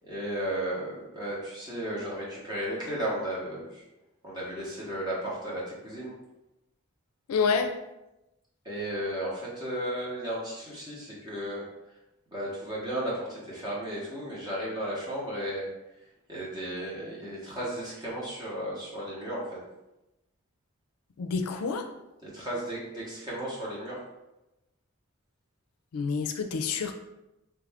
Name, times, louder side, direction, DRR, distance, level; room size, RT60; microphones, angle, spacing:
voice 1, 0.0-3.8 4.2-6.1 8.6-11.6 12.3-15.7 16.3-19.6 22.2-24.0, right 1 dB, 20° right, -6 dB, 1.0 m, -34 dB
voice 2, 7.3-7.7 21.2-21.9 25.9-26.9, left 5 dB, 85° left, 5 dB, 0.4 m, -28 dB
3.3 x 2.5 x 3.4 m, 0.95 s
head